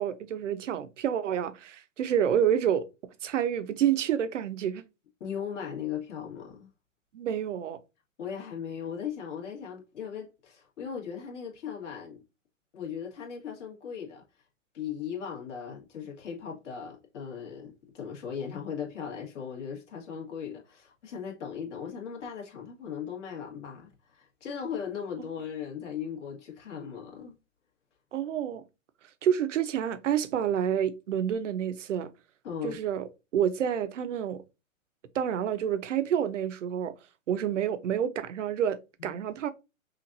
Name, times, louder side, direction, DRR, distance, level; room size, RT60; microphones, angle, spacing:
voice 1, 0.0-2.9 3.2-4.8 7.1-7.8 28.1-28.6 29.2-32.1 32.6-33.1 33.3-34.4 35.1-36.9 37.3-39.5, right 9 dB, 65° right, 0.8 m, -28 dB
voice 2, 5.2-6.7 8.2-12.2 12.7-14.2 14.7-27.4 32.4-32.8 39.0-39.2, left 7 dB, 60° left, 1.9 m, -38 dB
5.7 x 2.5 x 2.7 m
hypercardioid pair, 140°, 40 cm